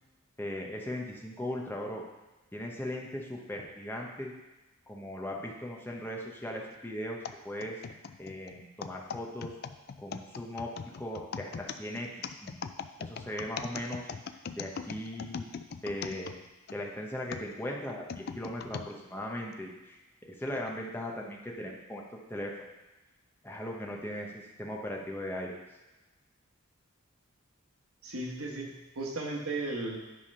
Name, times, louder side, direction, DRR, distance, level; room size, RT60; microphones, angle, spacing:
voice 1, 0.4-2.0 2.5-4.3 4.9-7.2 7.4-7.8 8.2-9.6 10.0-10.7 11.0-12.1 12.4-12.6 13.0-14.1 14.5-15.5 15.8-16.4 16.7-20.0 20.3-22.0 22.3-22.7 23.4-25.6, left 1 dB, 10° left, -1 dB, 0.9 m, -38 dB
sound 1, 7.2-16.8 17.3-18.9 19.5-19.6 20.5-20.7, left 6 dB, 45° left, 0.3 m, -40 dB
voice 2, 28.0-30.0, right 2 dB, 85° right, -1 dB, 1.5 m, -35 dB
10.0 x 3.5 x 5.5 m, 1.1 s
head